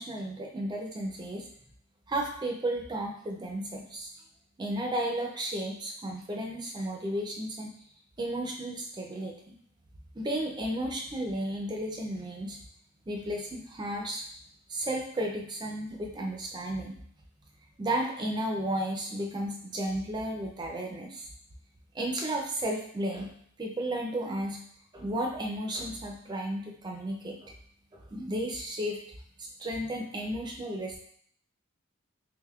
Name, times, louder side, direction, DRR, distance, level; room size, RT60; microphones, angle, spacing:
voice 1, 0.0-1.5 2.1-4.1 4.6-7.7 8.2-9.6 10.1-12.6 13.1-14.2 14.7-17.0 17.8-21.3 21.9-23.3 23.6-24.6 24.9-27.5 27.9-29.0 29.4-31.0, right 1 dB, 20° right, 1 dB, 0.4 m, -33 dB
3.4 x 3.3 x 2.3 m, 0.62 s
head